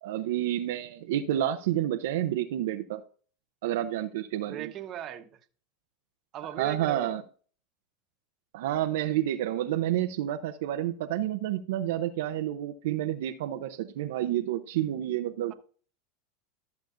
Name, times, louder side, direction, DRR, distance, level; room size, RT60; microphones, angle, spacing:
voice 1, 0.0-3.0 3.6-4.7 6.6-7.2 8.5-15.5, right 12 dB, 75° right, 0.7 m, -29 dB
voice 2, 4.5-5.4 6.3-7.2 15.5-15.6, right 10 dB, 45° right, 1.1 m, -39 dB
13.5 x 7.0 x 2.6 m
hypercardioid pair, 105°, 0 cm